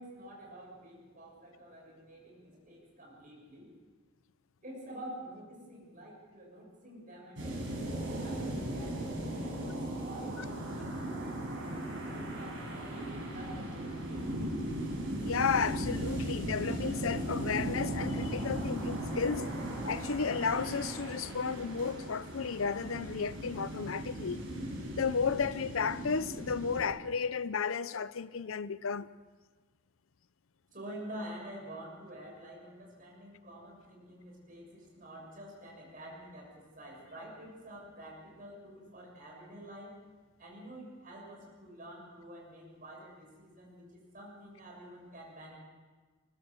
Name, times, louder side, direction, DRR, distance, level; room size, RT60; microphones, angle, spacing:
voice 1, 0.0-3.8 4.6-14.3 30.7-40.0 40.4-45.6, right 1 dB, 40° right, 6.9 m, -48 dB
sound 1, 7.4-26.8, right 1 dB, 60° right, 6.6 m, -37 dB
voice 2, 15.2-19.5 19.8-24.4 25.0-29.1, left 5 dB, 70° left, 0.6 m, -33 dB
20.5 x 19.5 x 6.6 m
head